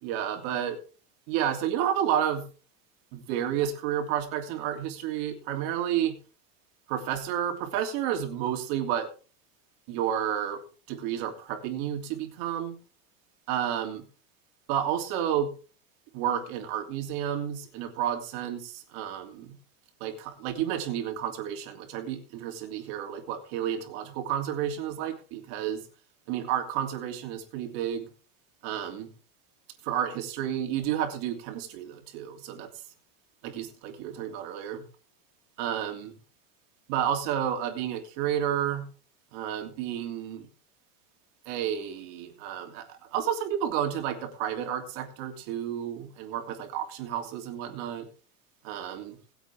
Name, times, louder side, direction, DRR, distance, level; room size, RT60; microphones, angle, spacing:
voice 1, 0.0-0.8 1.3-2.4 3.1-6.1 6.9-9.1 9.9-10.6 10.9-12.8 13.5-14.0 14.7-15.5 16.1-19.5 20.0-25.8 26.3-28.1 28.6-29.1 29.8-32.7 33.4-34.8 35.6-36.1 36.9-38.9 39.3-40.5 41.4-48.1 48.6-49.2, right 10 dB, 50° right, 4 dB, 3.1 m, -31 dB
22.0 x 8.0 x 3.6 m, 0.38 s
supercardioid pair, 165°, 40 cm